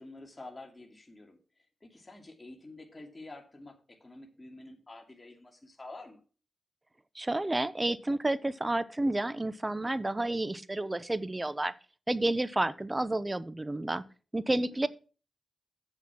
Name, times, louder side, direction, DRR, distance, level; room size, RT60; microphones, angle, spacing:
voice 1, 0.0-6.2 14.4-14.8, left 2 dB, 30° left, 3 dB, 2.4 m, -49 dB
voice 2, 7.1-11.7 12.1-14.0 14.3-14.9, right 2 dB, 25° right, 16 dB, 0.8 m, -30 dB
8.1 x 7.0 x 5.9 m, 0.37 s
cardioid pair, 50°, 0 cm